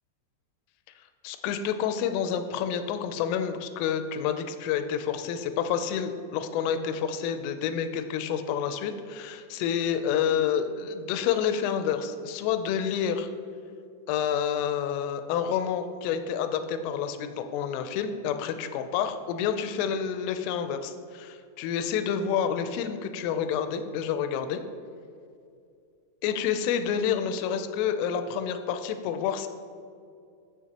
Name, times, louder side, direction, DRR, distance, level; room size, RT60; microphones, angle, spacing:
voice 1, 1.2-13.3 14.1-24.6 26.2-29.5, left 8 dB, 85° left, 8 dB, 3.1 m, -29 dB
14.5 x 6.9 x 2.9 m, 2.4 s
omnidirectional pair, 5.8 m